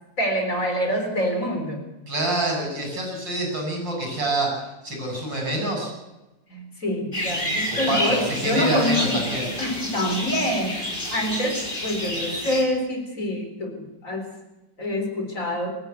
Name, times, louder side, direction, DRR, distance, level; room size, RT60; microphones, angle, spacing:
voice 1, 0.2-1.8 6.5-9.2 9.6-14.3 14.8-15.7, left 1 dB, 40° left, 3 dB, 4.4 m, -26 dB
voice 2, 2.1-5.9 7.7-9.5, right 2 dB, 70° right, 1 dB, 8.3 m, -27 dB
sound 1, 7.1-12.6, equal, 25° left, 5.4 m, -29 dB
24.0 x 13.5 x 8.3 m, 1.0 s
omnidirectional pair, 2.1 m